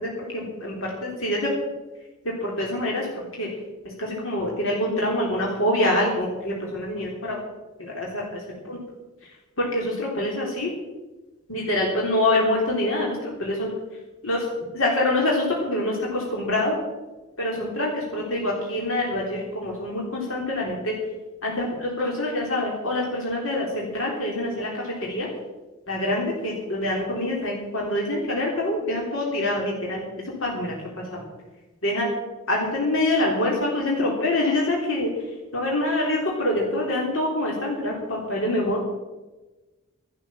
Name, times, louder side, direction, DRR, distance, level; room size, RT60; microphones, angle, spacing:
voice 1, 0.0-1.5 2.4-3.5 4.0-7.4 7.8-8.2 8.7-8.8 9.6-10.7 11.5-13.7 14.2-14.5 14.7-16.8 17.4-20.9 21.4-25.3 25.9-30.0 30.4-30.7 31.1-31.2 31.8-32.1 32.5-35.1 35.5-38.8, left 1 dB, 75° left, -3 dB, 3.6 m, -25 dB
14.0 x 12.0 x 7.3 m, 1.2 s
head